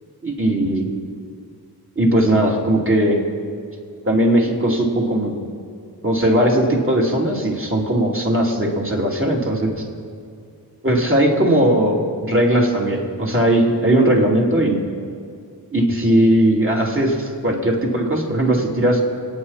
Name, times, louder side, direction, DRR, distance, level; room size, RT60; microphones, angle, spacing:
voice 1, 0.2-0.9 1.9-3.2 4.0-5.4 6.0-9.8 10.8-14.8 15.7-19.0, right 1 dB, 30° right, -2 dB, 3.3 m, -18 dB
28.5 x 9.5 x 4.3 m, 2.2 s
cardioid pair, 50°, 39 cm